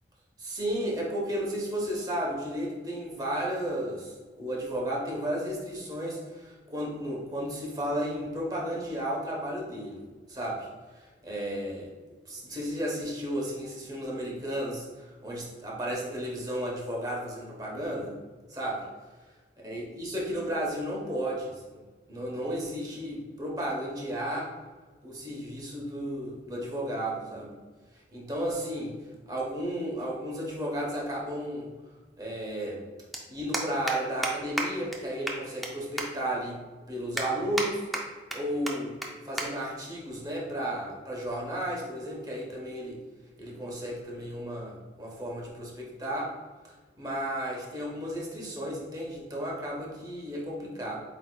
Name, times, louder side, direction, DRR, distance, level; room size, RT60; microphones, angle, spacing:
voice 1, 0.4-10.7 11.0-18.2 18.5-18.9 19.6-21.8 22.1-24.5 25.0-27.6 28.1-29.0 29.3-31.7 32.2-32.8 33.3-36.6 36.9-37.9 38.3-38.9 39.2-43.0 43.4-46.3 47.0-51.0, right 1 dB, 20° right, -3 dB, 0.9 m, -33 dB
sound 1, 33.1-33.2 33.5-33.9 34.2-34.3 34.6-34.7 34.9-35.0 35.3-35.7 36.0-36.1 36.5-36.6 37.2-37.7 37.9-38.4 38.7-38.8 39.0-39.1 39.4-39.5 39.8-40.0 40.8-41.0, right 1 dB, ahead, 0.4 m, -31 dB
8.1 x 2.8 x 2.2 m, 1.4 s
head